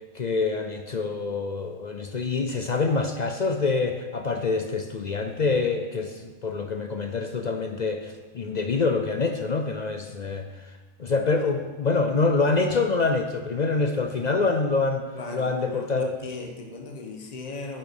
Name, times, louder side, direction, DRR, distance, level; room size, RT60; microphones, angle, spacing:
voice 1, 0.1-10.5 11.0-15.0 15.3-16.1, left 4 dB, 55° left, 6 dB, 0.5 m, -26 dB
voice 2, 15.1-17.8, left 3 dB, 30° left, 2 dB, 1.3 m, -37 dB
9.7 x 8.8 x 5.3 m, 1.3 s
omnidirectional pair, 1.5 m